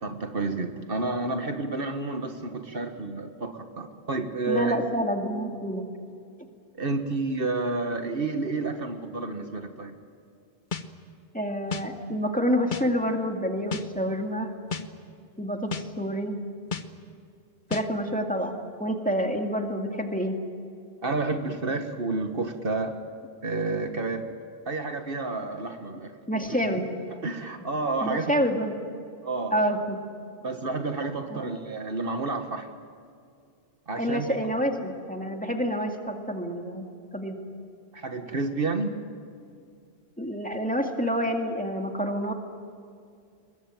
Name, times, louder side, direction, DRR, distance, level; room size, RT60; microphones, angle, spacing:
voice 1, 0.0-4.8 6.8-9.9 21.0-23.0 23.4-24.2 24.7-26.1 26.5-26.6 27.2-28.3 29.2-29.7 30.4-32.7 33.9-34.3 37.9-38.9, right 3 dB, 60° right, 6 dB, 1.7 m, -30 dB
voice 2, 4.5-5.8 11.3-14.5 15.4-16.4 17.7-20.4 26.3-27.0 28.0-28.7 29.5-30.0 31.3-31.5 33.9-36.9 37.1-37.4 40.2-42.3, equal, 10° left, 3 dB, 2.2 m, -28 dB
sound 1, 10.7-10.9 11.7-11.9 12.7-12.9 13.7-13.9 14.7-14.9 15.7-15.9 16.7-16.9 17.7-17.9, left 5 dB, 50° left, 1.2 m, -31 dB
22.0 x 21.5 x 9.1 m, 2.4 s
omnidirectional pair, 1.1 m